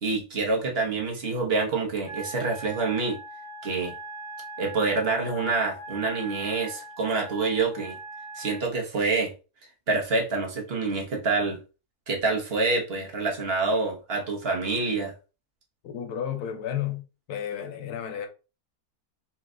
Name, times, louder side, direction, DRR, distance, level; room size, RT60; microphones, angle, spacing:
voice 1, 0.0-3.2 3.6-3.9 4.6-8.0 8.4-9.3 9.9-11.6 12.1-15.1, right 3 dB, 45° right, 1.1 m, -27 dB
Wind instrument woodwind instrument, 2.0-8.6, right 1 dB, 55° left, 1.9 m, -41 dB
voice 2, 15.8-18.3, left 9 dB, 90° left, 1.3 m, -32 dB
4.3 x 2.3 x 3.7 m
omnidirectional pair, 1.6 m